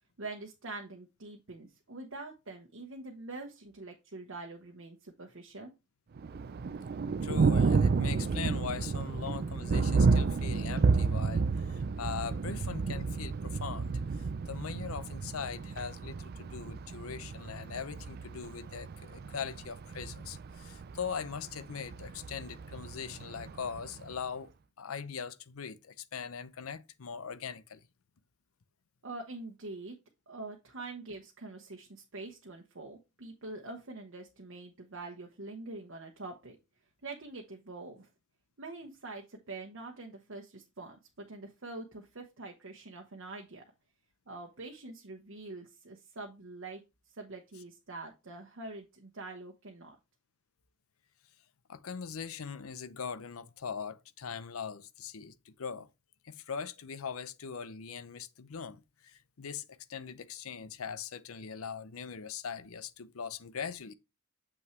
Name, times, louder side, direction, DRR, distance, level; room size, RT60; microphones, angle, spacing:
voice 1, 0.2-5.7 29.0-30.0 30.3-36.6 37.0-38.1 38.6-43.6 44.3-46.8 47.2-50.0, right 2 dB, 65° right, 1.0 m, -45 dB
Thunder, 6.2-24.1, right 4 dB, 45° right, 0.4 m, -31 dB
voice 2, 7.2-13.9 14.5-24.5 24.8-27.8 51.7-55.9 56.2-63.9, left 6 dB, 90° left, 0.6 m, -41 dB
7.1 x 5.7 x 3.1 m
head